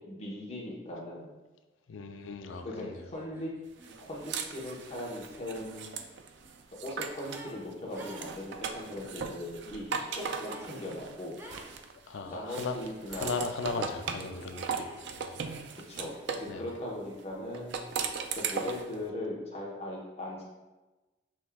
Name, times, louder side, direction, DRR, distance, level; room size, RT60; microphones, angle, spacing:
voice 1, 0.1-1.4 2.6-3.5 4.0-6.0 6.7-9.8 10.1-11.4 12.3-13.4 13.7-13.8 15.9-17.9 18.4-20.4, left 1 dB, 35° left, -3 dB, 1.0 m, -39 dB
voice 2, 1.9-3.0 12.1-12.8 13.1-15.4 16.5-16.7, left 4 dB, 85° left, 7 dB, 0.4 m, -37 dB
sound 1, 2.5-2.6 2.9-7.6 7.9-9.4 10.4-10.8 11.3-11.7 12.2-13.0 14.0-14.3 14.7-16.6 17.0-18.4, right 1 dB, 10° right, 0.5 m, -54 dB
sound 2, 3.8-7.5 7.9-12.1 12.5-16.5 17.5-18.9, right 6 dB, 65° right, 0.4 m, -38 dB
6.1 x 3.5 x 2.3 m, 1.1 s
head